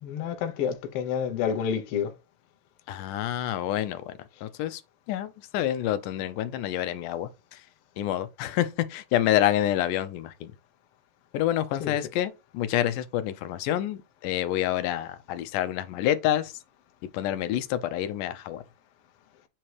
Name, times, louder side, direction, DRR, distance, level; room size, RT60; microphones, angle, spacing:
voice 1, 0.0-2.1 11.8-12.0, left 8 dB, 65° left, 1.5 m, -29 dB
voice 2, 2.9-4.1 4.4-4.8 5.1-7.3 8.0-10.5 11.3-16.5 17.1-18.6, left 12 dB, 90° left, 2.2 m, -28 dB
7.9 x 2.9 x 4.7 m
omnidirectional pair, 3.6 m